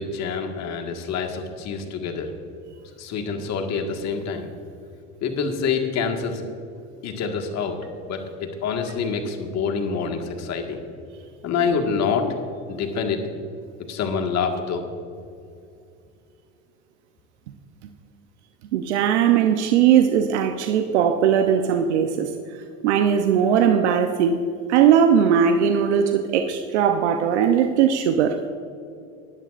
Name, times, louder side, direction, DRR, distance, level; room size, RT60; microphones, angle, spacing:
voice 1, 0.0-2.3 3.0-4.5 5.2-6.4 7.0-10.8 11.4-12.4 12.7-13.2 13.9-14.9, left 5 dB, 50° left, 4 dB, 1.8 m, -26 dB
voice 2, 18.7-22.3 22.8-24.4 24.7-28.4, right 8 dB, 90° right, 6 dB, 0.8 m, -19 dB
19.0 x 11.0 x 2.5 m, 2.4 s
supercardioid pair, 90°, 33 cm